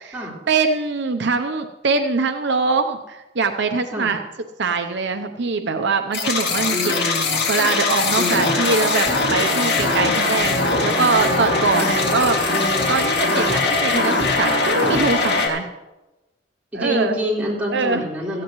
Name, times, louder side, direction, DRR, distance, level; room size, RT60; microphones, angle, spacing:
voice 1, 0.0-4.2 4.6-7.1 7.5-12.4 12.9-15.7 16.7-17.1 17.7-18.0, right 4 dB, 65° right, 6 dB, 0.7 m, -23 dB
sound 1, 6.1-15.5, left 3 dB, 65° left, 2.4 m, -21 dB
voice 2, 6.7-7.4 8.2-8.7 11.8-12.0 16.7-18.4, equal, 10° right, -6 dB, 4.2 m, -26 dB
17.0 x 14.5 x 3.1 m, 1.0 s
head